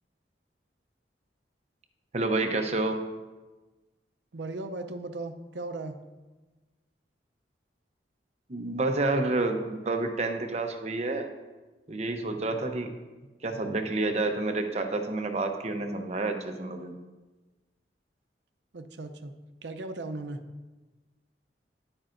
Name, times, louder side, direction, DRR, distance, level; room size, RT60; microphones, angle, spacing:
voice 1, 2.1-3.0 8.5-11.3 11.9-12.9 13.4-17.0, right 2 dB, 40° right, 5 dB, 0.8 m, -29 dB
voice 2, 4.3-6.0 18.7-19.3 19.6-20.4, right 2 dB, 80° right, 8 dB, 0.6 m, -37 dB
10.5 x 8.8 x 2.6 m, 1.2 s
head